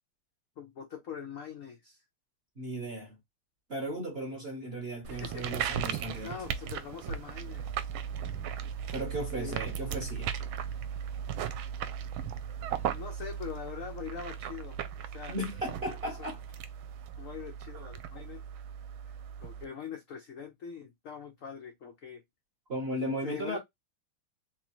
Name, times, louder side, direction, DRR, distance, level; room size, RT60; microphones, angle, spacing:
voice 1, 0.6-2.0 5.1-5.8 6.2-7.6 9.3-9.6 12.9-14.8 15.1-15.4 16.0-16.2 17.2-18.4 19.4-22.2 23.2-23.6, left 7 dB, 80° left, 0.7 m, -42 dB
voice 2, 2.6-3.2 3.7-6.3 8.9-10.4 15.3-16.4 22.7-23.6, right 1 dB, 45° right, 0.8 m, -36 dB
sound 1, 5.0-19.7, right 8 dB, 75° right, 1.4 m, -37 dB
3.7 x 3.1 x 2.9 m
omnidirectional pair, 2.3 m